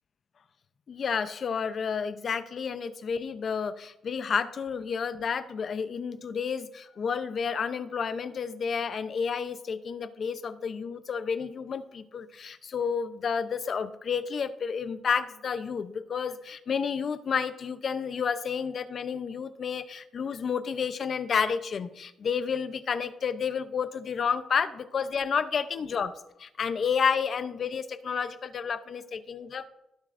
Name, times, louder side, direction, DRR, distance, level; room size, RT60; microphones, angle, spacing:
voice 1, 0.9-26.1 26.4-29.7, left 6 dB, 45° left, 11 dB, 0.6 m, -30 dB
19.5 x 7.5 x 2.6 m, 0.86 s
cardioid pair, 160°, 0 cm